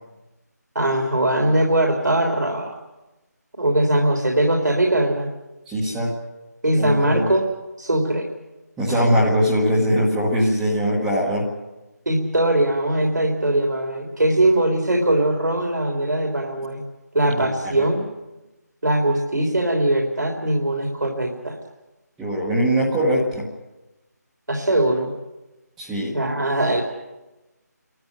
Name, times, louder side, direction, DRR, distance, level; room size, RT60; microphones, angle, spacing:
voice 1, 0.8-2.7 3.6-5.3 6.6-7.4 7.8-8.3 8.9-9.0 12.1-16.8 17.1-18.0 18.8-21.6 24.5-25.1 26.1-26.8, right 1 dB, 85° right, 1 dB, 3.5 m, -21 dB
voice 2, 5.7-6.1 6.7-7.2 8.8-11.5 17.3-17.5 22.2-23.5 25.8-26.1, equal, 5° right, -8 dB, 1.4 m, -21 dB
29.0 x 13.5 x 9.6 m, 1.1 s
figure-of-eight pair, 170°, 10 cm